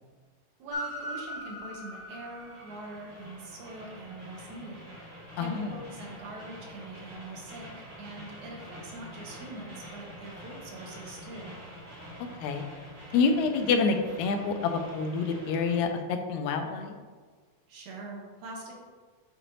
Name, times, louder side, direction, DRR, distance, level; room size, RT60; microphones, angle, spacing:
voice 1, 0.6-11.5 17.7-18.7, right 2 dB, 85° right, -1 dB, 2.6 m, -43 dB
Train, 0.7-15.8, equal, 40° right, 0.7 m, -44 dB
voice 2, 5.4-5.7 12.4-12.6 13.1-17.0, left 4 dB, 80° left, 5 dB, 2.0 m, -27 dB
8.1 x 5.0 x 3.0 m, 1.5 s
omnidirectional pair, 3.3 m